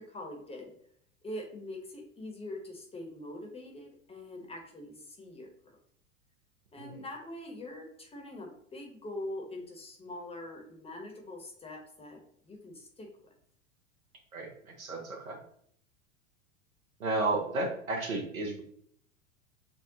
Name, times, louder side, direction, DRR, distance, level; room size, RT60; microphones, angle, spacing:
voice 1, 0.1-0.7 1.2-5.5 6.7-13.1, left 1 dB, 15° left, 1 dB, 0.9 m, -43 dB
voice 2, 14.3-15.4 17.0-18.6, right 2 dB, 80° right, 1 dB, 1.2 m, -33 dB
7.0 x 2.3 x 2.7 m, 0.65 s
figure-of-eight pair, 90°, 41 cm